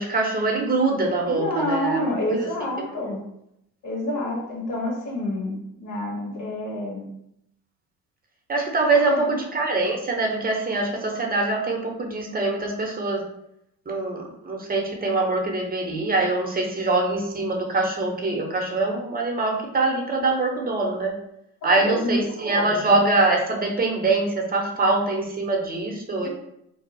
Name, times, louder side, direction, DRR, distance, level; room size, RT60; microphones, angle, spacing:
voice 1, 0.0-2.1 2.4-2.5 3.0-3.1 8.5-13.2 13.9-21.1 21.6-26.3, right 2 dB, 20° right, 1 dB, 0.9 m, -24 dB
voice 2, 1.3-3.2 3.8-7.1 8.9-9.3 21.7-22.2 26.2-26.3, left 1 dB, 45° left, -2 dB, 1.3 m, -28 dB
2.7 x 2.3 x 4.0 m, 0.79 s
hypercardioid pair, 65°, 42 cm